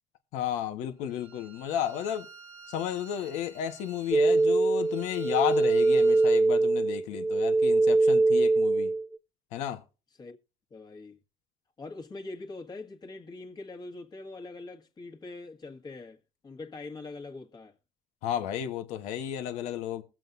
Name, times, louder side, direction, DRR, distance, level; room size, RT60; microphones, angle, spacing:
voice 1, 0.3-2.3 2.7-8.9 9.5-9.8 18.2-20.0, left 10 dB, 90° left, 1.3 m, -32 dB
Bowed string instrument, 1.0-6.4, right 4 dB, 85° right, 1.9 m, -52 dB
sound 1, 4.1-9.1, right 3 dB, 10° right, 0.6 m, -23 dB
voice 2, 10.7-11.2 11.8-17.8, left 3 dB, 35° left, 1.7 m, -43 dB
21.0 x 7.6 x 2.6 m
cardioid pair, 95°, 12 cm